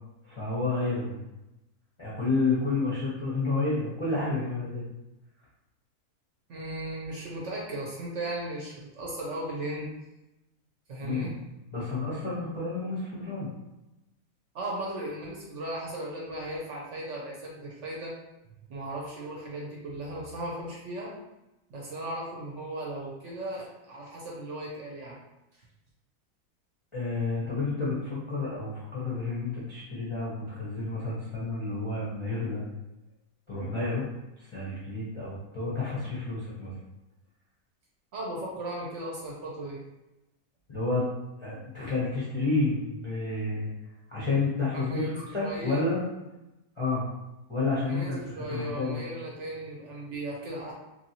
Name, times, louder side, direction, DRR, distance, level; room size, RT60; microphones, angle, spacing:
voice 1, 0.2-1.2 2.0-4.8 11.0-11.3 11.7-13.5 26.9-32.6 33.5-34.0 34.5-36.7 40.7-41.0 41.4-43.7 44.1-46.0 46.8-47.1 47.5-49.0, left 3 dB, 40° left, -8 dB, 0.4 m, -30 dB
voice 2, 6.5-9.9 10.9-11.4 14.5-18.1 18.7-21.1 21.7-25.2 38.1-39.8 44.6-45.9 47.9-50.7, right 1 dB, 60° right, -3 dB, 0.8 m, -36 dB
3.0 x 2.6 x 2.7 m, 0.96 s
omnidirectional pair, 1.6 m